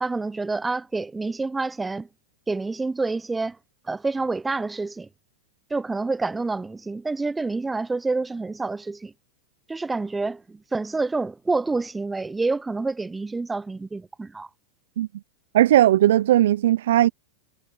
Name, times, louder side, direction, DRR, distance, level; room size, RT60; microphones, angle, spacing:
voice 1, 0.0-2.1 2.5-3.6 3.9-5.1 5.7-9.1 9.7-14.5, right 3 dB, 10° right, 1.0 m, -28 dB
voice 2, 15.5-17.1, right 13 dB, 65° right, 0.9 m, -17 dB
figure-of-eight pair, 95°, 0 cm